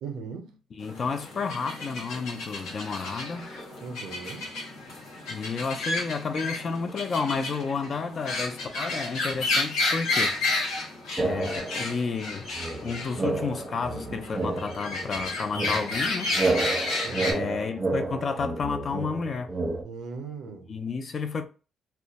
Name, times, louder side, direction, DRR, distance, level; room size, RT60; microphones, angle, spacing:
voice 1, 0.0-0.6 3.8-4.5 17.0-17.5 19.8-20.7, right 5 dB, 85° right, 0.4 m, -38 dB
voice 2, 0.7-3.5 5.3-10.4 11.2-12.5 12.8-16.4 17.2-19.5 20.5-21.4, left 5 dB, 45° left, 0.4 m, -31 dB
sound 1, 0.8-17.3, left 2 dB, 85° left, 1.0 m, -32 dB
sound 2, 11.2-12.0 12.5-19.8, right 3 dB, 25° right, 0.5 m, -30 dB
2.2 x 2.1 x 2.7 m
cardioid pair, 90°, 0 cm